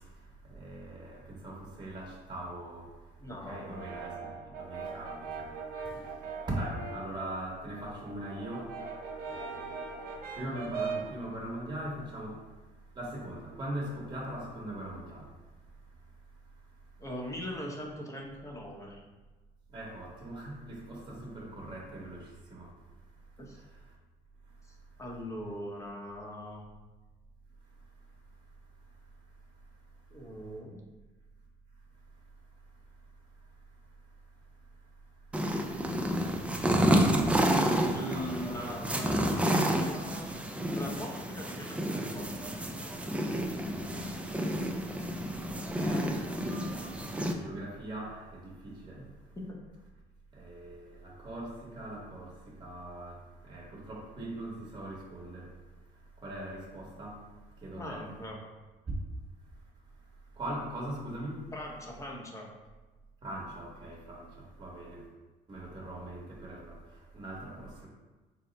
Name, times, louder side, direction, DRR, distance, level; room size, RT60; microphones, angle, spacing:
voice 1, 0.4-2.9 3.3-5.6 5.8-6.1 6.5-8.7 9.3-9.9 10.3-12.4 12.9-15.3 19.7-22.7 37.8-38.6 45.7-46.3 46.7-46.8 47.3-49.0 50.3-55.5 56.2-57.2 57.6-58.1 58.9-59.0 60.4-61.4 63.2-65.0 65.5-66.8 67.1-67.9, right 1 dB, 25° right, -3 dB, 1.0 m, -41 dB
voice 2, 3.2-3.8 17.0-19.0 23.4-23.6 25.0-26.7 30.1-30.8 37.9-40.4 40.7-42.6 49.0-49.1 49.5-49.6 57.8-58.4 61.5-62.5, equal, 20° left, -1 dB, 0.8 m, -41 dB
Brass instrument, 3.5-7.2 7.6-11.2, right 5 dB, 65° right, 0.7 m, -40 dB
sound 1, 35.3-47.3, right 1 dB, 5° right, 0.3 m, -30 dB
4.4 x 2.0 x 3.9 m, 1.2 s
cardioid pair, 110°, 17 cm